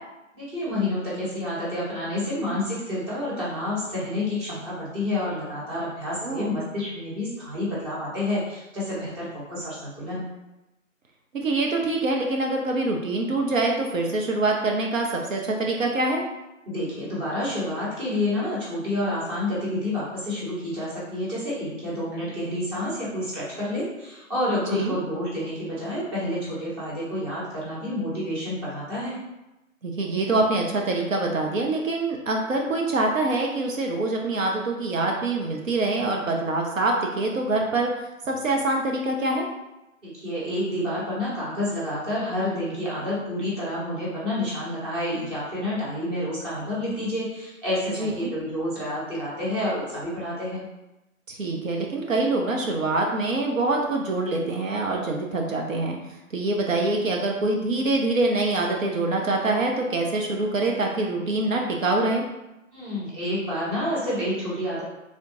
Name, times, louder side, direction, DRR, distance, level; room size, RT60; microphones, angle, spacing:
voice 1, 0.3-10.2 16.6-29.2 40.0-50.6 62.7-64.8, left 1 dB, 20° right, -8 dB, 1.0 m, -29 dB
voice 2, 6.2-6.5 11.3-16.2 24.7-24.9 29.8-37.9 38.3-39.4 47.9-48.3 51.3-56.0 56.3-62.2, right 2 dB, 70° right, 1 dB, 0.7 m, -25 dB
3.6 x 2.4 x 2.6 m, 0.97 s
figure-of-eight pair, 140°, 40 cm